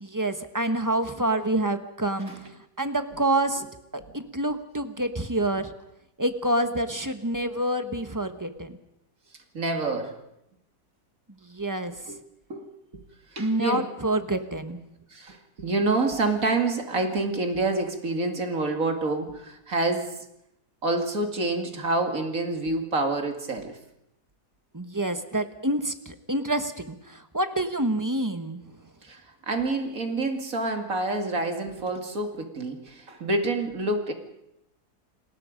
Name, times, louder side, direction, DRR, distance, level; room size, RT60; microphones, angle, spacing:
voice 1, 0.0-2.3 2.8-3.6 4.1-5.7 6.2-8.8 11.4-11.9 13.4-14.8 24.7-28.6, right 1 dB, 15° right, 8 dB, 1.2 m, -27 dB
voice 2, 9.5-10.2 12.1-12.2 12.5-12.7 13.3-13.9 15.1-20.3 20.8-23.8 29.0-34.1, right 2 dB, 60° right, 4 dB, 2.8 m, -27 dB
29.0 x 20.0 x 5.2 m, 0.83 s
omnidirectional pair, 1.7 m